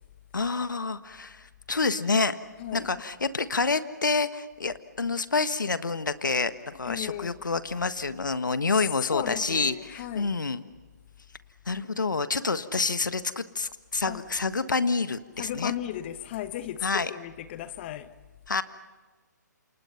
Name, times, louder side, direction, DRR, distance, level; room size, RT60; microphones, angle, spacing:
voice 1, 0.3-2.3 2.7-10.6 11.7-15.7 16.8-17.1 18.5-18.6, left 4 dB, 85° left, 1.5 m, -28 dB
voice 2, 2.6-2.9 6.8-7.4 9.0-10.4 14.0-14.2 15.4-18.1, left 12 dB, 35° left, 1.1 m, -35 dB
29.0 x 28.0 x 5.8 m
hypercardioid pair, 140°, 10 cm